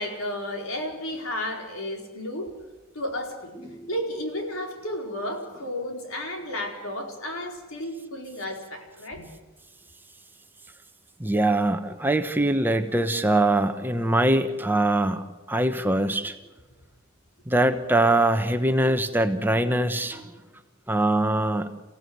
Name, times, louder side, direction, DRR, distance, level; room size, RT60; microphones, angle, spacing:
voice 1, 0.0-2.5 2.9-3.5 3.9-9.2, left 1 dB, 80° left, 2 dB, 4.6 m, -32 dB
voice 2, 11.2-16.3 17.5-20.2 20.9-21.7, right 1 dB, 10° right, 7 dB, 1.1 m, -23 dB
28.5 x 16.0 x 8.1 m, 1.1 s
head